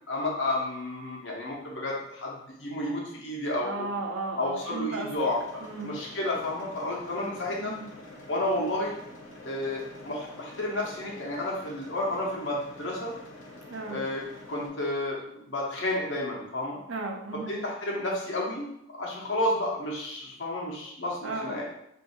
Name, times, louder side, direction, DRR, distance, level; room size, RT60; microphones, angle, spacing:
voice 1, 0.1-3.9 4.4-7.7 8.3-8.9 9.4-13.1 13.9-14.2 14.5-16.8 17.5-18.7 19.0-21.6, left 1 dB, 70° left, -3 dB, 1.0 m, -31 dB
voice 2, 3.6-5.1 5.6-5.9 7.5-7.8 13.7-14.0 16.9-17.6 21.2-21.5, right 3 dB, 80° right, 2 dB, 0.7 m, -35 dB
sound 1, 5.2-14.7, left 1 dB, 90° left, 0.8 m, -47 dB
2.7 x 2.7 x 4.2 m, 0.77 s
head